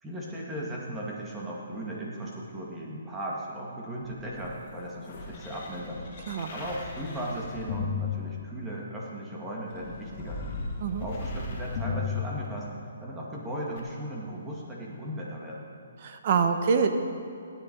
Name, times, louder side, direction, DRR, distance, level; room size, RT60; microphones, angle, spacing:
voice 1, 0.0-6.1 6.5-10.4 11.0-12.7 13.0-15.7, right 1 dB, 10° right, -4 dB, 2.1 m, -37 dB
sound 1, 4.0-9.0 9.7-13.0 13.8-13.9, left 4 dB, 35° left, 2.6 m, -36 dB
voice 2, 16.0-16.9, right 6 dB, 45° right, 7 dB, 1.1 m, -25 dB
15.5 x 10.5 x 4.7 m, 2.6 s
hypercardioid pair, 155°, 0 cm